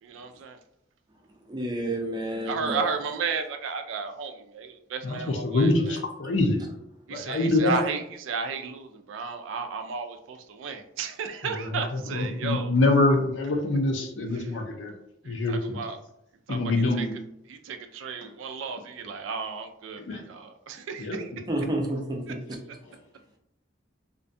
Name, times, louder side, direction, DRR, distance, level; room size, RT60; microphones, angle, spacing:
voice 1, 0.0-0.6 2.4-6.0 7.1-12.7 14.3-14.5 15.2-16.0 16.5-16.6 16.9-17.1 17.5-21.3, right 5 dB, 90° right, 7 dB, 0.3 m, -33 dB
voice 2, 1.5-2.8 21.5-22.6, right 1 dB, 20° right, 1 dB, 0.4 m, -30 dB
voice 3, 5.0-6.7 7.1-7.8 11.5-14.9 15.2-15.8 16.5-17.1 20.0-20.2 21.0-21.2 21.7-21.8, left 2 dB, 75° left, 3 dB, 0.5 m, -25 dB
2.5 x 2.2 x 2.5 m, 0.78 s
head